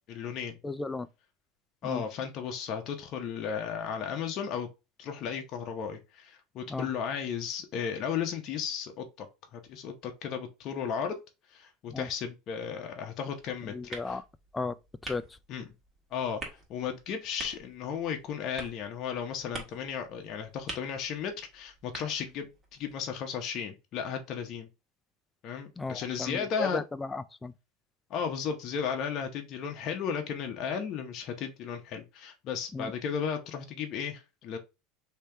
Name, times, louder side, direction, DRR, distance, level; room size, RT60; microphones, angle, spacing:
voice 1, 0.1-0.6 1.8-4.7 5.0-9.3 9.5-11.2 11.5-14.2 15.5-15.7 16.1-16.4 16.7-24.7 25.4-26.8 28.1-34.6, left 7 dB, 45° left, 0.7 m, -35 dB
voice 2, 0.6-1.1 1.8-2.0 6.7-6.9 11.9-12.1 13.7-14.2 14.5-14.7 15.0-15.2 25.8-27.5 32.7-32.9, left 3 dB, 15° left, 0.3 m, -35 dB
sound 1, 13.4-23.0, right 3 dB, 25° right, 1.5 m, -47 dB
3.3 x 2.8 x 3.3 m
supercardioid pair, 115°, 0 cm